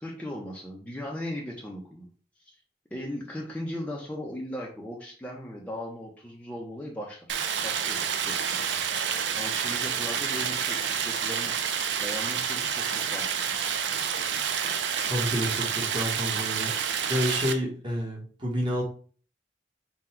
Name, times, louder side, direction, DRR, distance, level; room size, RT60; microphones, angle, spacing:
voice 1, 0.0-2.1 2.9-9.1 9.3-13.5, left 1 dB, 10° left, -3 dB, 0.6 m, -38 dB
Stream, 7.3-17.5, right 7 dB, 85° right, 0.5 m, -29 dB
voice 2, 15.1-16.7 17.1-18.8, equal, 25° right, -3 dB, 1.2 m, -29 dB
3.8 x 2.3 x 4.3 m, 0.42 s
head